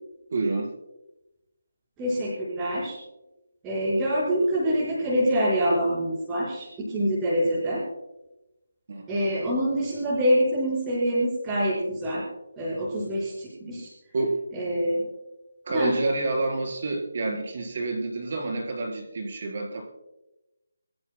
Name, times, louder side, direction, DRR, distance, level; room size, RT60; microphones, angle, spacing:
voice 1, 0.3-0.7 8.9-9.1 14.1-14.3 15.6-19.8, right 2 dB, 40° right, 1 dB, 4.1 m, -28 dB
voice 2, 2.0-2.9 3.6-7.8 9.1-12.2 12.5-13.9 14.5-15.0 15.7-16.0, equal, 10° right, -10 dB, 4.8 m, -25 dB
25.5 x 14.0 x 2.2 m, 0.97 s
hypercardioid pair, 175°, 0 cm